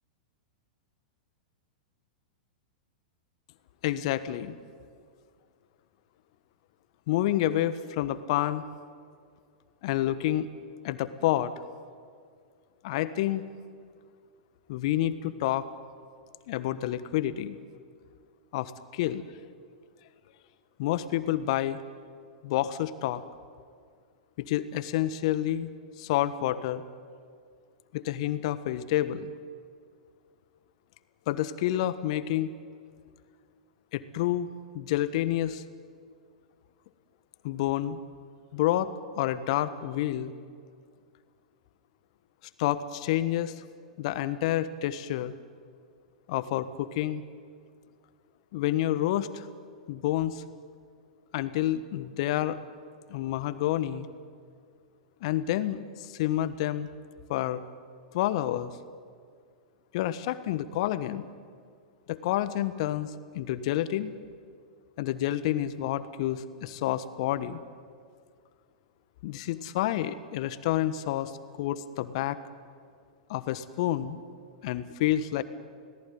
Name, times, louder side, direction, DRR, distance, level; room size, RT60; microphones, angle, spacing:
voice 1, 3.8-4.6 7.1-8.6 9.8-10.5 10.8-11.5 12.8-13.4 14.7-15.7 16.5-17.6 18.5-19.2 20.8-21.8 22.4-23.2 24.4-25.7 26.0-26.8 27.9-29.3 31.3-32.5 33.9-34.5 34.7-35.6 37.4-38.0 38.5-40.3 42.6-43.6 44.0-45.3 46.3-47.2 48.5-49.5 49.9-50.4 51.3-52.6 53.1-54.1 55.2-56.9 57.3-57.6 58.1-58.7 59.9-61.3 62.1-64.1 65.0-67.6 69.2-71.3 71.6-72.4 73.3-74.2 74.6-75.4, left 13 dB, 55° left, 13 dB, 1.3 m, -29 dB
30.0 x 18.5 x 9.6 m, 2.1 s
figure-of-eight pair, 100°, 4 cm